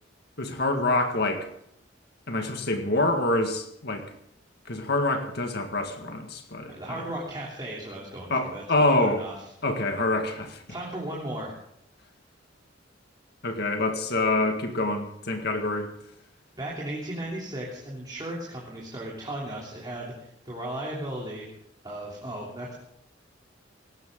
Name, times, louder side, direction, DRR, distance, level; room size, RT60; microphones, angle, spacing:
voice 1, 0.4-1.5 2.3-4.1 4.7-7.1 8.3-9.2 9.6-10.6 13.4-15.9, left 2 dB, 55° left, 5 dB, 1.9 m, -26 dB
voice 2, 6.7-8.6 9.0-9.3 10.7-11.5 16.6-21.4 21.8-22.7, right 1 dB, 25° right, -4 dB, 3.2 m, -36 dB
18.0 x 16.5 x 3.8 m, 0.71 s
head